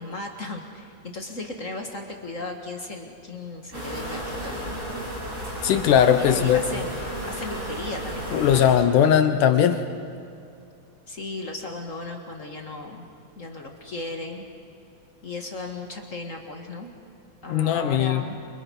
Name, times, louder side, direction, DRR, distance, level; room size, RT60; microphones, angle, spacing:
voice 1, 0.0-4.8 6.2-8.9 11.1-13.1 13.3-14.4 15.2-16.9 17.4-18.4, left 2 dB, 40° left, 3 dB, 1.2 m, -36 dB
sound 1, 3.7-8.8, right 1 dB, 20° right, 6.3 m, -33 dB
voice 2, 5.6-6.6 8.3-9.8 17.5-18.2, left 9 dB, 70° left, 9 dB, 2.4 m, -19 dB
29.5 x 26.0 x 5.5 m, 2.5 s
omnidirectional pair, 4.1 m